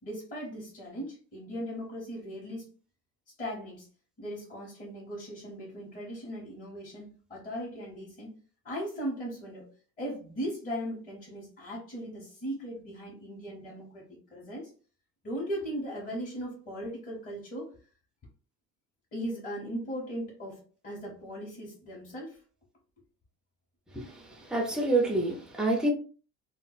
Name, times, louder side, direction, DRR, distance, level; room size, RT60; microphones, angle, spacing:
voice 1, 0.0-2.7 3.4-3.9 4.2-8.3 8.6-9.7 10.0-14.7 15.2-17.7 19.1-22.4, equal, 25° left, 0.8 m, -38 dB
voice 2, 23.9-25.9, right 2 dB, ahead, 0.3 m, -28 dB
2.2 x 2.1 x 3.8 m
cardioid pair, 165°, 34 cm